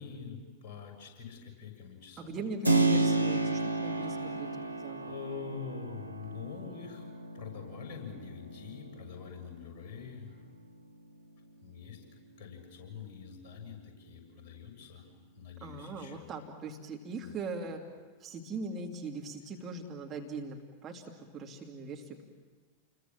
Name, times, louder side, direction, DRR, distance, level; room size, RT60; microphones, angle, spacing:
voice 1, 0.0-2.3 3.8-4.7 5.1-7.1 7.3-10.4 11.6-12.0 12.4-15.1 15.4-16.2 17.2-17.4, left 6 dB, 40° left, 2 dB, 7.1 m, -45 dB
voice 2, 2.2-4.5 4.8-5.2 15.6-17.8 18.2-22.2, right 3 dB, 25° right, 1 dB, 2.5 m, -40 dB
Keyboard (musical), 2.6-11.2, right 3 dB, 90° right, 1.0 m, -32 dB
29.5 x 22.5 x 7.5 m, 1.4 s
figure-of-eight pair, 90°, 0 cm